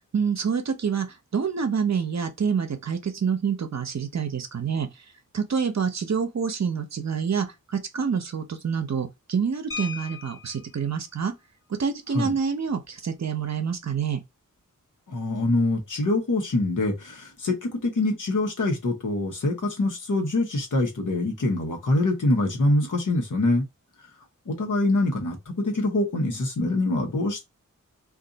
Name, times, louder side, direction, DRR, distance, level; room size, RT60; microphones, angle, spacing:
voice 1, 0.1-4.9 5.3-11.3 11.8-14.2, right 6 dB, 55° right, 0.8 m, -27 dB
sound 1, 9.7-10.8 12.2-12.4 12.7-12.9 13.3-13.6, left 5 dB, 40° left, 0.9 m, -38 dB
voice 2, 15.1-23.6 24.5-27.4, left 2 dB, 75° left, 1.1 m, -24 dB
2.6 x 2.5 x 3.8 m
wide cardioid pair, 80°, 32 cm